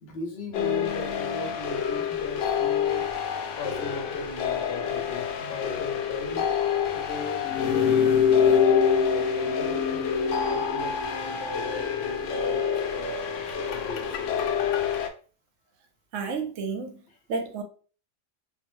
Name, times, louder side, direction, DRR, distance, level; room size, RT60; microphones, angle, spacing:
voice 1, 0.0-3.1 3.5-6.5 6.9-14.9 17.1-17.2, left 2 dB, 60° left, 1.0 m, -39 dB
sound 1, 0.5-15.1, left 7 dB, 90° left, 0.9 m, -26 dB
voice 2, 16.1-17.0 17.3-17.6, right 4 dB, 90° right, 1.0 m, -31 dB
3.8 x 2.0 x 3.0 m
omnidirectional pair, 1.2 m